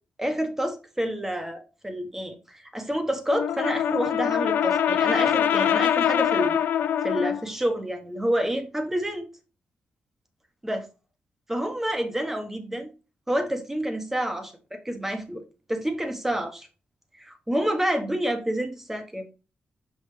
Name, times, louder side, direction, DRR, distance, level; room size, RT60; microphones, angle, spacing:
voice 1, 0.2-6.6 7.0-9.3 10.6-10.8 11.5-12.9 13.3-15.4 15.7-16.7 17.1-19.3, equal, 10° right, 6 dB, 1.3 m, -28 dB
Brass instrument, 3.3-7.5, left 9 dB, 85° left, 0.4 m, -23 dB
5.7 x 5.4 x 3.3 m, 0.33 s
cardioid pair, 95°, 3 cm